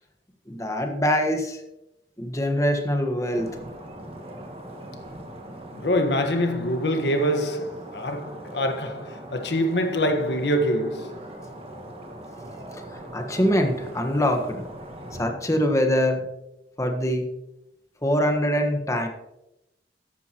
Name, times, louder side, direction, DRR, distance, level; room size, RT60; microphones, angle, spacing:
voice 1, 0.5-1.6 2.2-3.6 12.7-14.6 15.2-16.2 16.8-17.3 18.0-19.1, equal, 20° left, 1.4 m, -24 dB
sound 1, 3.3-15.2, right 1 dB, 35° right, 1.7 m, -41 dB
voice 2, 5.7-11.3, equal, 75° left, 1.5 m, -25 dB
14.0 x 10.5 x 3.0 m
head